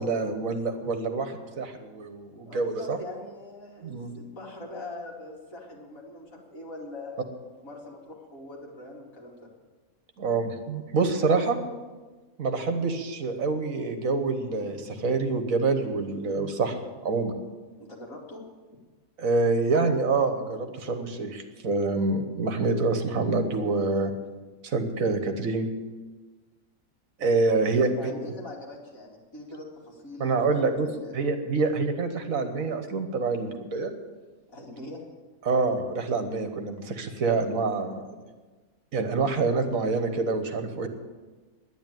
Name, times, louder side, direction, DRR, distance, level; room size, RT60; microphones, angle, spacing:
voice 1, 0.0-3.0 3.8-4.1 10.2-11.6 12.4-17.3 19.2-24.1 24.6-25.7 27.2-27.9 30.2-30.9 31.1-33.9 35.4-38.0 38.9-40.9, right 3 dB, 65° right, 7 dB, 1.6 m, -26 dB
voice 2, 2.4-7.2 7.6-9.5 17.8-18.4 27.5-31.3 34.5-35.0, left 2 dB, 65° left, -2 dB, 3.1 m, -42 dB
10.5 x 10.0 x 9.1 m, 1.3 s
omnidirectional pair, 1.6 m